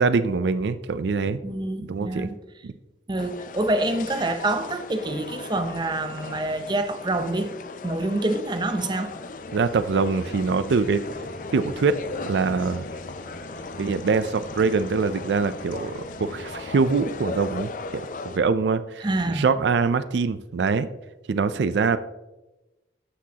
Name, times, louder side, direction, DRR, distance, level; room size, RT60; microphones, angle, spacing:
voice 1, 0.0-1.4 1.9-2.3 2.6-2.7 9.5-11.0 11.5-12.0 12.3-12.8 13.8-20.9 21.3-22.0, right 4 dB, 75° right, 0.4 m, -24 dB
voice 2, 1.4-2.4 3.1-7.5 7.8-9.1 19.0-19.5, right 2 dB, 25° right, 0.6 m, -26 dB
sound 1, 3.2-18.4, left 4 dB, 45° left, 0.5 m, -38 dB
sound 2, 9.0-18.1, left 1 dB, 65° left, 1.3 m, -43 dB
13.5 x 6.1 x 2.8 m
head